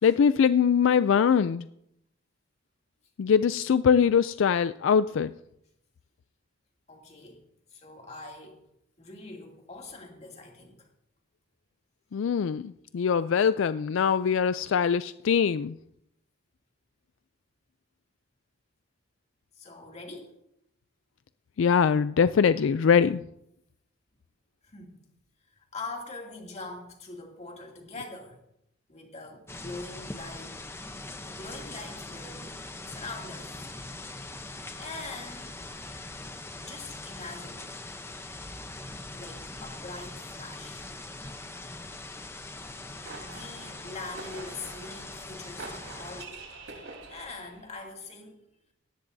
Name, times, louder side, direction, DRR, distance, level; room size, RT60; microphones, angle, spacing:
voice 1, 0.0-1.6 3.2-5.3 12.1-15.8 21.6-23.2, left 7 dB, 70° left, 13 dB, 0.4 m, -22 dB
voice 2, 6.9-8.7 9.0-10.9 19.5-20.4 24.6-25.0 25.6-28.4 28.9-30.6 31.2-32.6 32.9-33.7 34.8-35.6 36.6-37.7 39.1-40.9 43.3-46.5 47.1-48.4, left 3 dB, 35° left, 0 dB, 2.6 m, -43 dB
sound 1, 29.5-46.2, left 2 dB, 15° left, 0.7 m, -42 dB
sound 2, 42.6-47.7, right 3 dB, 80° right, 3.6 m, -46 dB
18.0 x 14.5 x 2.7 m, 0.79 s
head